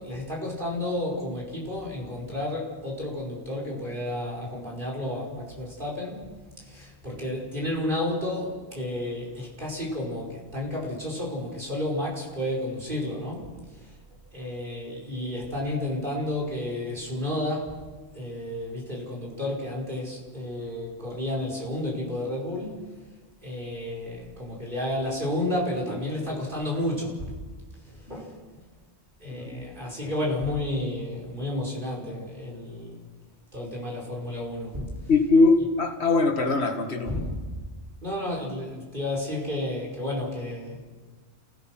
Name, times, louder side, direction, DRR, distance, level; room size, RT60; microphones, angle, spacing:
voice 1, 0.0-6.3 6.6-13.9 14.3-17.8 18.1-22.9 23.4-27.4 27.9-28.4 29.2-33.1 33.5-34.9 37.1-37.4 38.0-40.9, left 1 dB, 50° right, -3 dB, 5.4 m, -31 dB
voice 2, 29.3-29.7 30.0-30.1 35.1-37.2, left 3 dB, 80° left, 5 dB, 2.2 m, -22 dB
28.5 x 16.5 x 6.0 m, 1.4 s
omnidirectional pair, 1.1 m